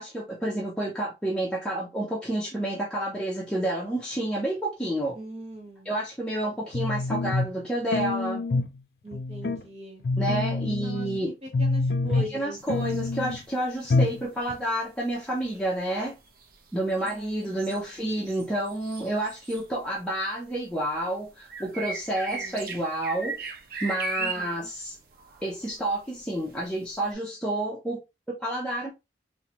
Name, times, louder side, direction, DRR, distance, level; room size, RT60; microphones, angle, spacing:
voice 1, 0.0-5.2 5.9-8.5 10.2-11.3 12.2-16.2 16.7-23.4 23.8-25.0 25.4-28.0 28.3-28.9, right 1 dB, 5° left, 0.5 m, -29 dB
voice 2, 5.1-5.9 9.0-10.0 10.8-13.0 17.0-18.1 22.3-22.7 24.2-24.7, equal, 35° right, 0.9 m, -41 dB
sound 1, 6.7-7.6 7.9-8.8 9.1-9.6 10.0-11.2 11.5-12.4 12.7-13.4 13.9-14.2 14.5-14.6, left 3 dB, 60° left, 0.4 m, -26 dB
sound 2, 12.6-13.6 13.8-20.2 20.4-27.1, right 4 dB, 55° right, 0.5 m, -38 dB
3.0 x 2.2 x 2.7 m
head